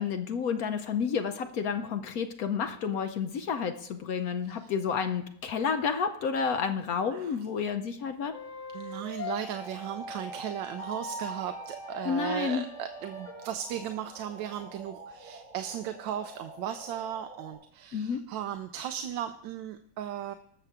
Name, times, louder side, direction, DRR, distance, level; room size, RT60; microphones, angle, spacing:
voice 1, 0.0-8.4 12.0-12.6 17.9-18.2, left 6 dB, 65° left, 8 dB, 0.9 m, -30 dB
sound 1, 8.3-13.5, left 1 dB, 40° left, 1.6 m, -41 dB
voice 2, 8.7-20.3, right 10 dB, 80° right, 8 dB, 1.3 m, -36 dB
sound 2, 9.5-17.5, right 2 dB, 25° left, 4.8 m, -48 dB
20.0 x 6.8 x 3.5 m, 0.64 s
omnidirectional pair, 2.1 m